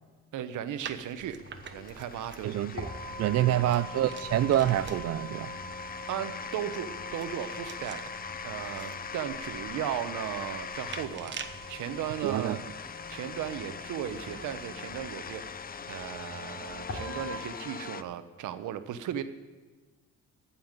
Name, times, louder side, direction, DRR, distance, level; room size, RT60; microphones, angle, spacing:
voice 1, 0.3-1.4 1.7-2.6 3.4-3.7 6.1-8.1 8.4-11.4 11.7-12.6 13.1-15.4 15.9-19.2, right 10 dB, 80° right, 11 dB, 1.0 m, -36 dB
sound 1, 0.8-5.3 6.8-11.7, right 6 dB, 40° right, 1.0 m, -47 dB
sound 2, 1.0-18.0, left 6 dB, 30° left, 0.6 m, -42 dB
sound 3, 1.2-17.4, left 1 dB, 45° left, 3.1 m, -44 dB
voice 2, 2.4-2.9 3.2-5.5 12.2-12.6, right 12 dB, 55° right, 12 dB, 0.5 m, -26 dB
15.0 x 5.7 x 8.9 m, 1.4 s
cardioid pair, 90°, 30 cm